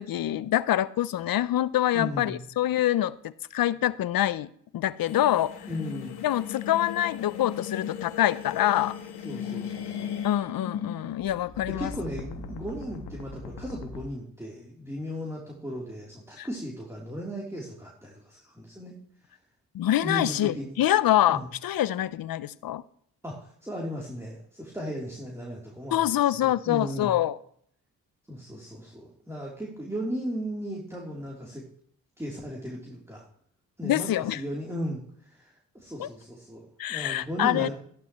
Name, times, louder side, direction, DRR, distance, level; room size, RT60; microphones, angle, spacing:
voice 1, 0.0-5.5 6.2-9.0 10.2-11.9 16.4-16.5 19.7-22.8 25.9-27.4 33.8-34.4 36.0-36.1 36.8-37.7, left 12 dB, 60° left, 18 dB, 0.7 m, -25 dB
voice 2, 1.9-2.4 5.7-6.1 9.2-10.1 11.7-18.9 20.0-20.7 21.3-21.5 23.2-26.1 26.4-27.1 28.3-31.7 32.2-33.2 33.8-37.7, equal, 5° right, -3 dB, 3.4 m, -36 dB
sound 1, 5.1-14.0, left 8 dB, 75° left, 1.5 m, -37 dB
14.0 x 11.5 x 3.1 m, 0.63 s
supercardioid pair, 45°, 39 cm